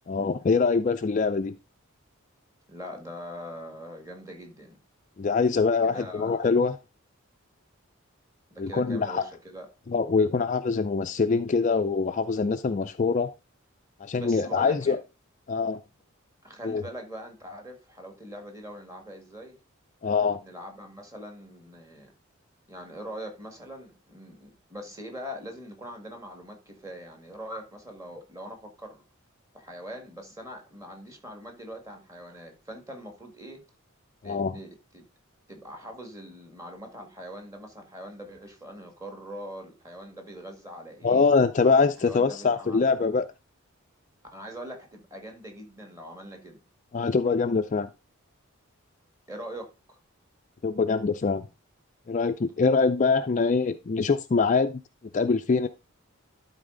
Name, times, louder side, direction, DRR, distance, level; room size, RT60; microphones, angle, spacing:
voice 1, 0.1-1.5 5.2-6.7 8.6-9.2 9.9-13.3 14.0-15.0 15.5-15.8 16.6-16.8 20.0-20.4 34.2-34.5 41.0-43.2 46.9-47.9 50.6-51.4 52.1-54.8 55.1-55.7, left 4 dB, 35° left, 0.4 m, -24 dB
voice 2, 2.7-4.8 5.8-6.3 8.5-9.7 14.1-15.0 16.4-19.6 20.4-22.1 22.7-29.0 29.5-33.6 34.2-35.0 35.5-41.3 42.0-43.0 44.3-46.6 49.3-50.0, equal, 15° right, 1.8 m, -42 dB
12.0 x 4.1 x 3.8 m
head